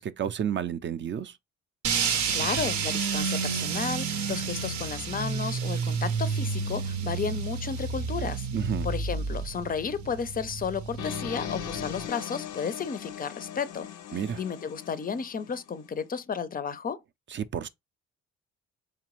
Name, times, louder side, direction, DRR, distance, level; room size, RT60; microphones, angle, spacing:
voice 1, 0.0-1.3 8.5-8.9 14.1-14.4 17.3-17.7, right 9 dB, 40° right, 0.4 m, -31 dB
sound 1, 1.8-12.1, right 5 dB, 70° right, 0.7 m, -30 dB
voice 2, 2.0-8.5 8.8-17.0, left 6 dB, 30° left, 0.4 m, -33 dB
sound 2, 11.0-15.9, left 10 dB, 80° left, 0.5 m, -39 dB
3.8 x 3.3 x 2.9 m
cardioid pair, 90°, 30 cm